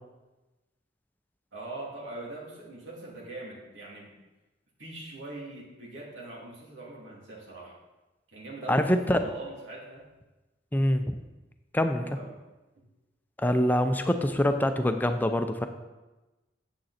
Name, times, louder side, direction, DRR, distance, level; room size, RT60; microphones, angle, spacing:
voice 1, 1.5-4.1 4.8-7.7 8.3-10.0 12.0-12.4, right 2 dB, 85° right, -5 dB, 3.0 m, -42 dB
voice 2, 8.7-9.2 10.7-11.2 11.7-12.0 13.4-15.7, left 1 dB, 10° left, 7 dB, 0.6 m, -24 dB
9.2 x 7.7 x 4.3 m, 1.1 s
head